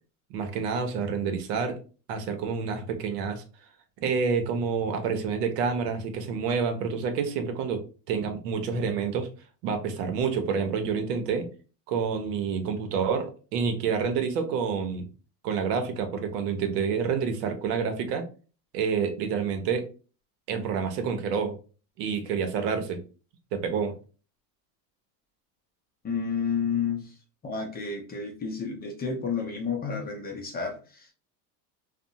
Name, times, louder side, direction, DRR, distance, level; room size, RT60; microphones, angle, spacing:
voice 1, 0.3-1.8 2.1-3.4 4.0-7.8 8.1-9.3 9.6-11.5 11.9-15.1 15.4-18.3 18.7-19.9 20.5-21.6 22.0-23.0 23.5-23.9, right 6 dB, 85° right, 7 dB, 0.7 m, -28 dB
voice 2, 26.0-27.1 27.4-31.1, left 5 dB, 20° left, 2 dB, 0.4 m, -31 dB
2.6 x 2.1 x 2.6 m, 0.36 s
supercardioid pair, 115°, 47 cm